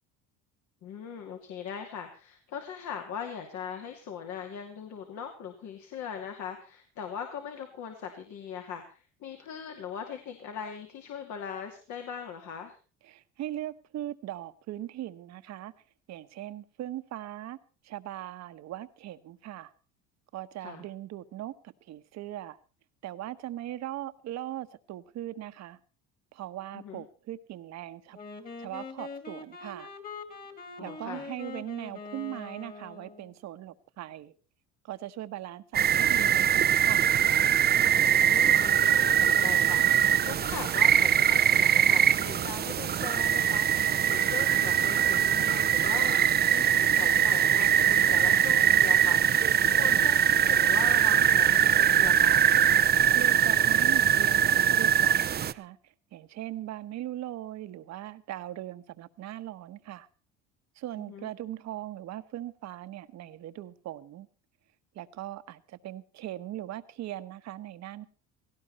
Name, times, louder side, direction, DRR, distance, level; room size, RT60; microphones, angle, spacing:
voice 1, 0.8-12.8 20.6-20.9 26.7-27.0 30.8-31.2 38.3-49.5 49.8-52.5 61.0-61.3, left 7 dB, 60° left, 2.6 m, -40 dB
voice 2, 13.0-15.7 16.1-17.6 17.8-19.7 20.3-21.5 21.9-22.6 23.0-25.8 26.3-28.2 28.6-29.9 30.8-34.3 34.8-37.1 53.1-60.1 60.7-64.3 64.9-68.1, right 13 dB, 55° right, 1.2 m, -39 dB
Wind instrument woodwind instrument, 28.1-33.3, left 4 dB, 25° left, 2.6 m, -43 dB
sound 1, 35.7-55.5, right 9 dB, 30° right, 0.7 m, -22 dB
17.5 x 16.5 x 4.2 m
cardioid pair, 115°, 32 cm